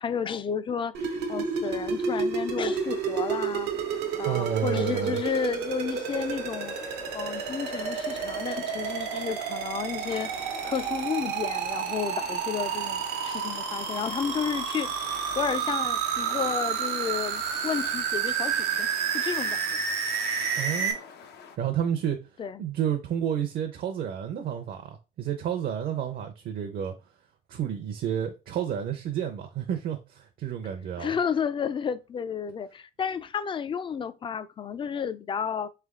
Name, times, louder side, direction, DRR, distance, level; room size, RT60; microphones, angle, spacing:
voice 1, 0.0-3.7 4.2-10.3 10.6-18.9 19.1-19.8 22.4-22.7 31.0-35.7, left 7 dB, 30° left, 0.4 m, -32 dB
sound 1, 0.9-20.9, right 6 dB, 90° right, 0.9 m, -30 dB
sound 2, 2.7-21.6, left 6 dB, 75° left, 0.8 m, -46 dB
voice 2, 4.2-5.2 20.6-21.0 21.6-22.2 22.6-26.9 27.5-31.1, right 9 dB, 60° right, 0.7 m, -30 dB
3.6 x 3.3 x 3.6 m
cardioid pair, 110°, 17 cm